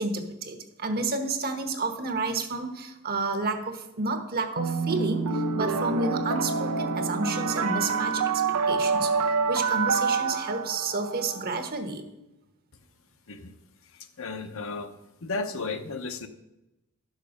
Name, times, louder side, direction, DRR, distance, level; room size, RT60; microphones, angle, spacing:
voice 1, 0.0-12.0, right 3 dB, 45° right, 7 dB, 1.1 m, -30 dB
sound 1, 4.6-11.6, right 4 dB, 90° right, 0.8 m, -27 dB
voice 2, 13.9-14.9 15.2-16.3, left 3 dB, 60° left, 9 dB, 0.8 m, -34 dB
11.0 x 6.6 x 5.2 m, 0.95 s
head